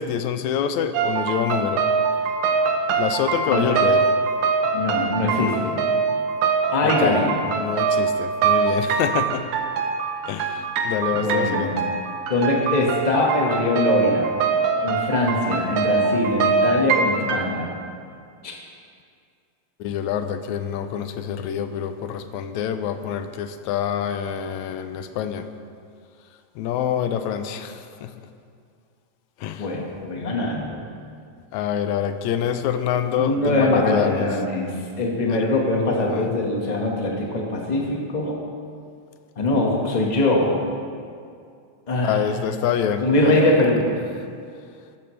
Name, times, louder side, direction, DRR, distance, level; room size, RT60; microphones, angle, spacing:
voice 1, 0.0-1.9 3.0-4.0 6.8-7.2 7.5-9.5 10.3-11.8 19.8-25.5 26.6-28.1 29.4-29.8 31.5-34.3 35.3-35.5 36.1-36.3 42.0-43.6, left 8 dB, 80° left, 9 dB, 2.0 m, -26 dB
sound 1, 0.9-17.4, right 5 dB, 75° right, 2.1 m, -23 dB
voice 2, 3.5-3.8 4.7-5.8 6.7-7.3 11.1-11.8 12.3-14.3 14.8-17.8 18.4-18.5 29.6-30.8 33.2-34.7 35.0-38.4 39.4-40.5 41.9-42.2 43.0-43.9, left 2 dB, 30° left, -1 dB, 0.8 m, -22 dB
14.0 x 13.5 x 3.3 m, 2.3 s
omnidirectional pair, 3.3 m